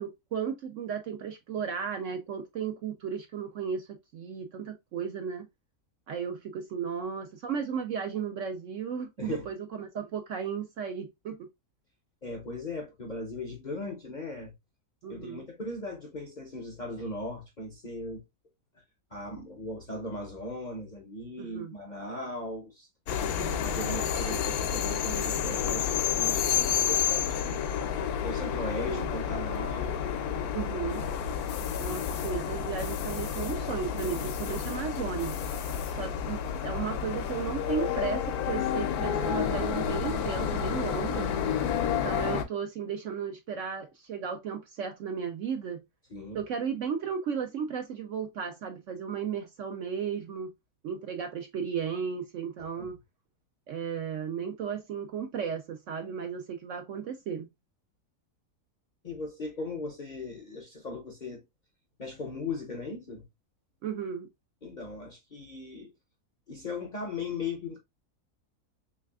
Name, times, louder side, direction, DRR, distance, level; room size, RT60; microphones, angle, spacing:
voice 1, 0.0-5.5 6.1-11.5 15.0-15.5 21.4-21.7 23.1-23.6 26.7-27.0 28.9-29.1 30.5-31.0 31.8-35.4 35.9-41.3 41.9-45.8 46.3-50.5 50.8-53.0 53.7-57.5 63.8-64.3, right 7 dB, 65° right, 0.8 m, -35 dB
voice 2, 12.2-14.5 15.1-18.2 19.1-22.9 23.6-27.8 28.2-30.0 46.1-46.4 52.6-52.9 59.0-61.4 62.0-63.2 64.6-65.9 66.5-67.8, left 2 dB, 40° left, 0.6 m, -38 dB
sound 1, 23.1-42.4, left 8 dB, 75° left, 1.1 m, -30 dB
3.4 x 3.2 x 2.3 m
omnidirectional pair, 1.7 m